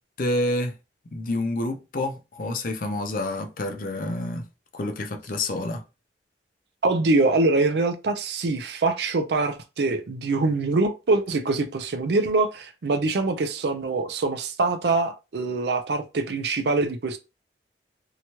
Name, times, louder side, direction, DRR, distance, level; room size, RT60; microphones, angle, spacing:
voice 1, 0.2-0.7 1.1-4.4 4.7-5.8, left 1 dB, 50° left, 0.5 m, -28 dB
voice 2, 6.8-17.2, right 3 dB, 70° right, 0.5 m, -24 dB
2.8 x 2.2 x 2.9 m
head